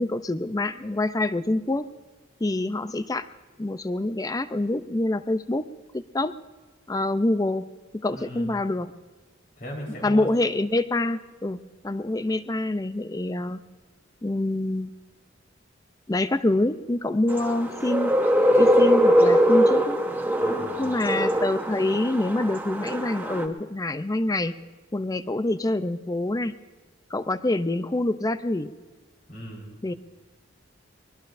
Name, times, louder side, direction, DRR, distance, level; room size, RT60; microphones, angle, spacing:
voice 1, 0.0-1.9 2.4-3.3 3.6-5.7 5.9-6.3 6.9-7.7 7.9-8.9 10.0-11.6 11.8-13.6 14.2-14.9 16.1-18.2 18.6-20.0 20.8-24.6 24.9-26.5 27.1-28.7 29.8-29.9, left 2 dB, 20° left, 12 dB, 0.5 m, -26 dB
voice 2, 8.1-8.6 9.6-10.3 20.4-21.3 29.3-29.7, equal, 45° left, -1 dB, 4.4 m, -38 dB
sound 1, 17.3-23.4, equal, 10° right, 1.0 m, -22 dB
23.0 x 21.0 x 2.6 m, 1.3 s
head